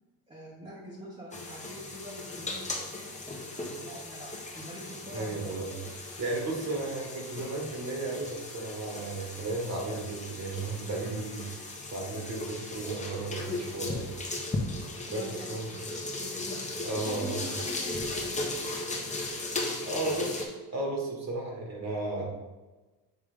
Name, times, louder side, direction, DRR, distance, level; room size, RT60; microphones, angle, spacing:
voice 1, 0.3-5.5 15.1-20.2, equal, 15° right, -4 dB, 1.2 m, -45 dB
sound 1, 1.3-20.4, left 2 dB, 15° left, 1.1 m, -37 dB
voice 2, 5.1-5.7 6.2-11.4 11.9-14.1 15.0-15.2 15.5-15.7 16.8-17.4 19.8-22.2, right 2 dB, 40° right, -1 dB, 1.7 m, -34 dB
6.9 x 3.3 x 5.1 m, 1.2 s
cardioid pair, 115°, 41 cm